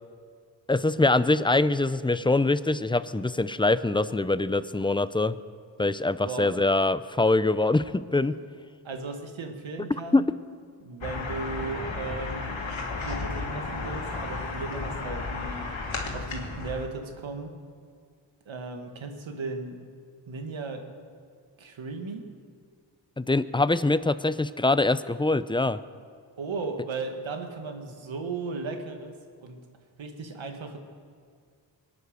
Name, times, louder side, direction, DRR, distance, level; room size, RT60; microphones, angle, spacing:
voice 1, 0.7-5.4 5.8-8.4 10.1-10.3 23.2-25.8, left 2 dB, 10° left, 15 dB, 0.5 m, -24 dB
voice 2, 8.8-10.3 10.8-12.6 13.0-15.7 16.1-17.5 18.5-19.8 20.3-20.9 21.6-22.3 26.4-29.1 29.4-29.6 30.0-30.8, right 3 dB, 80° right, 5 dB, 1.9 m, -36 dB
sound 1, 11.0-16.9, left 3 dB, 80° left, 2.4 m, -33 dB
22.5 x 9.8 x 6.5 m, 2.1 s
cardioid pair, 65°, 46 cm